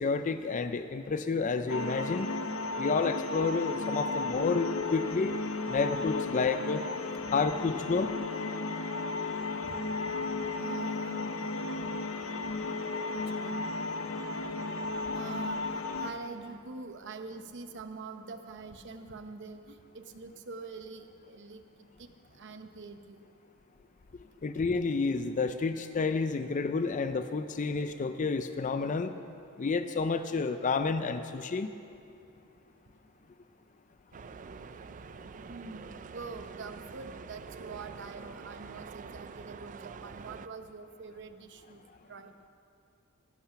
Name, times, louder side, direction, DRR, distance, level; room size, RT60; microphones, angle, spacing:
voice 1, 0.0-2.3 2.8-5.4 5.7-6.8 7.3-8.2 24.4-29.1 29.6-31.7, left 4 dB, 35° left, 10 dB, 0.4 m, -30 dB
sound 1, 1.7-16.1, left 3 dB, 65° left, 0.7 m, -34 dB
voice 2, 10.6-11.3 13.1-13.6 15.0-21.6 22.0-22.1 22.4-23.2 35.5-41.8 42.1-42.3, right 4 dB, 55° right, 8 dB, 0.8 m, -45 dB
sound 2, 34.1-40.5, right 5 dB, 35° right, 0.3 m, -46 dB
15.5 x 11.5 x 5.8 m, 2.6 s
head